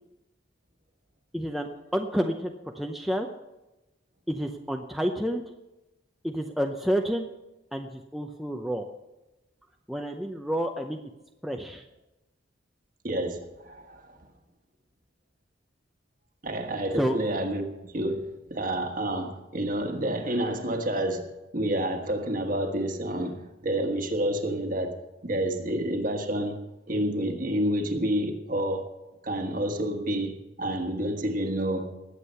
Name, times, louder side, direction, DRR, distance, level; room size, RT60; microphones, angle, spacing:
voice 1, 1.3-3.3 4.3-5.4 6.2-7.3 7.7-8.8 9.9-11.0 11.4-11.8 17.0-17.2, equal, ahead, 0.6 m, -29 dB
voice 2, 13.0-14.2 16.4-25.0 25.2-28.9 29.2-32.0, right 1 dB, 45° right, 1.4 m, -29 dB
19.5 x 8.2 x 5.6 m
head